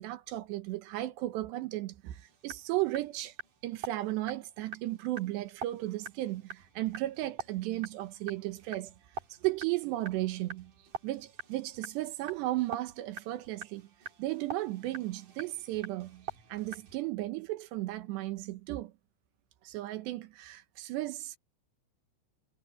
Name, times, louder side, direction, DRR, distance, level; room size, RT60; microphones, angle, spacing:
voice 1, 0.0-3.3 3.6-8.9 9.4-10.7 11.0-13.9 14.2-18.9 19.6-21.4, right 16 dB, 70° right, 2.9 m, -35 dB
sound 1, 2.1-17.0, right 5 dB, 45° right, 4.1 m, -46 dB
omnidirectional pair, 5.6 m